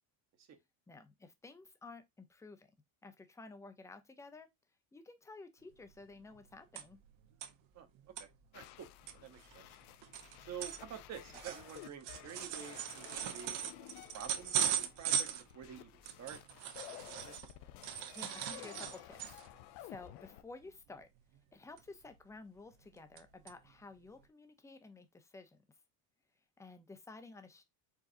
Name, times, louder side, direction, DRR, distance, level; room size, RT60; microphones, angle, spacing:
voice 1, 0.9-2.7 3.0-4.5 4.9-7.0 18.1-19.4 19.8-21.1 21.5-25.6 26.6-27.6, left 3 dB, 5° left, 0.5 m, -53 dB
sound 1, 5.8-5.9 6.1-7.1 7.4-7.5 7.9-8.2 8.7-8.8 9.1-17.5 17.8-19.6 20.0-20.2 20.5-20.7 21.8-22.3 22.7-23.2 23.5-23.6 24.2-24.3, right 9 dB, 60° right, 1.0 m, -39 dB
voice 2, 7.7-9.7 10.4-15.3 15.5-16.4 16.8-17.3, right 8 dB, 35° right, 1.0 m, -50 dB
sound 2, 8.5-20.4, left 14 dB, 65° left, 0.7 m, -54 dB
4.8 x 3.9 x 2.6 m
cardioid pair, 135°, 49 cm